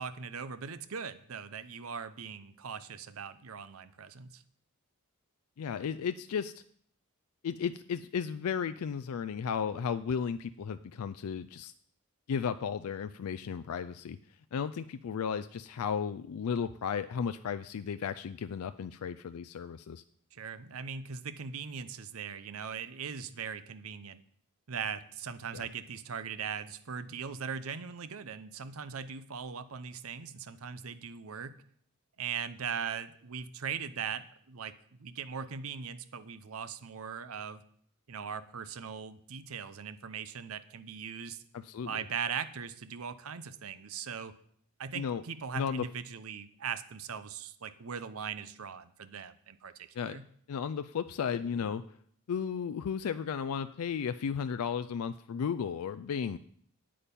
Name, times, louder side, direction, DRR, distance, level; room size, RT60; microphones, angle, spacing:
voice 1, 0.0-4.4 20.3-24.2 24.7-31.6 32.2-34.7 35.0-37.6 38.1-41.4 41.9-44.3 44.8-50.3, right 6 dB, 70° right, 13 dB, 0.7 m, -40 dB
voice 2, 5.6-6.6 7.4-11.7 12.3-14.2 14.5-20.0 25.5-25.7 41.5-41.9 44.9-45.2 45.5-45.8 49.9-50.2 50.5-52.0 52.3-56.4, left 7 dB, 80° left, 12 dB, 0.4 m, -34 dB
8.8 x 8.5 x 5.3 m, 0.63 s
head